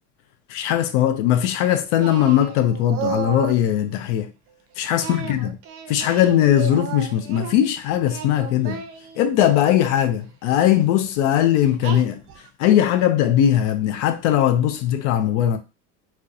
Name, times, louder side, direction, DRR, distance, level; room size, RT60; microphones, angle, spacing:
voice 1, 0.5-4.3 4.8-5.6 5.9-8.8 9.2-12.2 12.6-15.6, left 11 dB, 80° left, 0.5 m, -19 dB
Singing, 2.0-3.6 5.0-7.5 8.0-9.8 10.6-10.9 11.8-12.5, right 7 dB, 45° right, 0.4 m, -33 dB
2.8 x 2.1 x 2.4 m
supercardioid pair, 135°, 35 cm